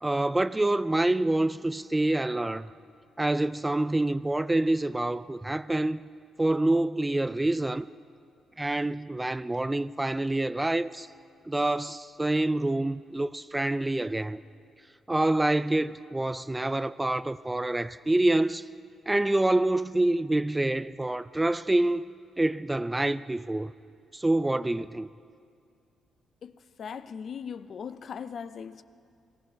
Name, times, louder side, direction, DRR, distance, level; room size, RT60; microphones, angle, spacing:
voice 1, 0.0-2.7 3.2-6.0 6.4-7.9 8.6-11.1 11.5-14.4 15.1-18.7 19.1-22.1 22.4-23.7 24.1-25.1, right 2 dB, 15° right, 0.4 m, -26 dB
voice 2, 26.8-28.8, left 7 dB, 60° left, 0.5 m, -39 dB
18.5 x 14.5 x 5.4 m
cardioid pair, 80°, 0 cm